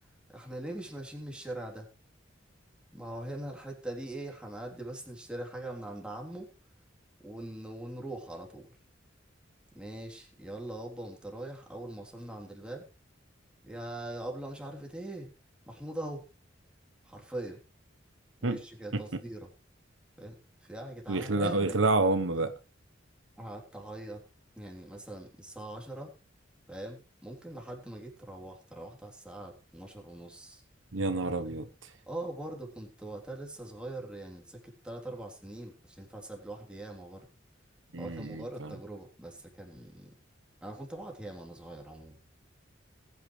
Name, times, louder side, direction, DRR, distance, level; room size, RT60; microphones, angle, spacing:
voice 1, 0.3-1.9 2.9-6.5 7.2-8.8 9.7-12.9 13.6-15.3 15.7-16.2 17.0-17.6 18.4-19.5 20.2-20.3 20.6-21.8 23.4-24.2 24.6-26.1 26.7-30.6 32.1-37.3 38.0-40.1 40.6-42.2, right 1 dB, 5° right, 3.5 m, -42 dB
voice 2, 21.1-22.5 30.9-31.9 37.9-38.7, right 2 dB, 85° right, 1.2 m, -29 dB
20.5 x 9.5 x 3.3 m
head